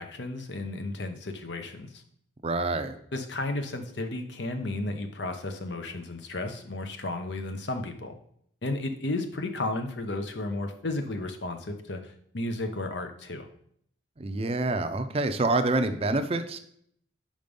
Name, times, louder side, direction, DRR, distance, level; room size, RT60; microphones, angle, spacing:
voice 1, 0.0-2.0 3.1-8.1 8.6-13.5, left 2 dB, 70° left, 7 dB, 0.8 m, -33 dB
voice 2, 2.4-2.9 14.2-16.6, right 2 dB, 35° right, 10 dB, 0.5 m, -27 dB
5.2 x 5.1 x 5.2 m, 0.65 s
head